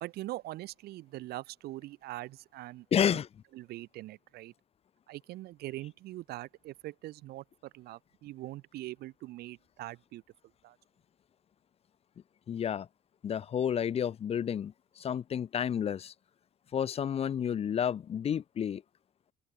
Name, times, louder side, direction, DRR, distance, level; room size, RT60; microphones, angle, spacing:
voice 1, 0.0-2.9 3.1-3.2 3.6-4.5 5.1-7.4 7.7-10.2 10.6-10.8, right 16 dB, 70° right, 0.5 m, -42 dB
voice 2, 2.9-3.3 12.5-12.9 13.2-16.1 16.7-18.8, left 8 dB, 35° left, 0.5 m, -30 dB
open air
cardioid pair, 110°, 17 cm